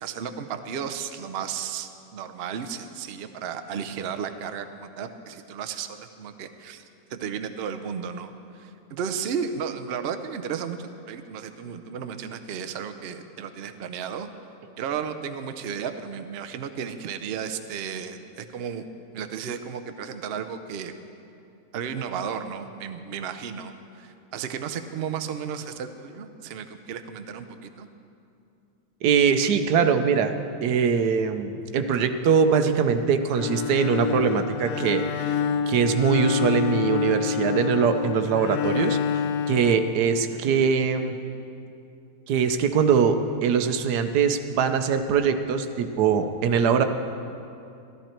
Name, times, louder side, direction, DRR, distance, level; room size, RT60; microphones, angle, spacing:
voice 1, 0.0-6.8 7.1-14.3 14.8-18.8 19.1-20.9 21.7-27.9 40.3-40.5, right 7 dB, 60° right, 8 dB, 0.6 m, -34 dB
voice 2, 29.0-35.4 35.7-41.2 42.3-46.8, right 6 dB, 80° right, 8 dB, 1.3 m, -22 dB
Bowed string instrument, 33.3-40.5, left 7 dB, 70° left, 1.0 m, -27 dB
13.5 x 13.0 x 4.4 m, 2.6 s
omnidirectional pair, 1.7 m